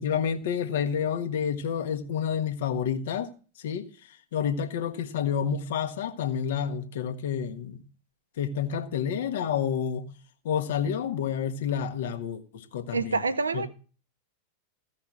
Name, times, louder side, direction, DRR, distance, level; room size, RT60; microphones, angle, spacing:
voice 1, 0.0-3.3 3.6-3.9 4.3-7.8 8.4-10.1 10.4-13.2 13.5-13.6, left 8 dB, 55° left, 1.5 m, -29 dB
voice 2, 12.9-13.7, right 4 dB, 75° right, 1.0 m, -27 dB
16.0 x 5.7 x 6.1 m
figure-of-eight pair, 90°, 0 cm